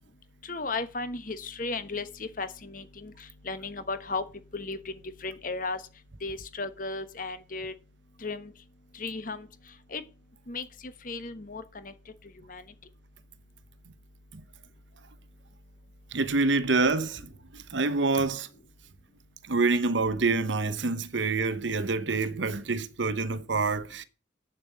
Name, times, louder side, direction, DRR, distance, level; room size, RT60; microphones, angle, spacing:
voice 1, 0.4-3.1 3.4-4.2 4.5-5.8 6.2-7.7 8.2-8.5 8.9-9.5 9.9-10.0 10.5-11.9 12.5-12.6, left 3 dB, 45° left, 1.2 m, -35 dB
voice 2, 16.1-18.5 19.4-24.0, right 3 dB, 85° right, 0.9 m, -27 dB
7.9 x 7.1 x 8.1 m
head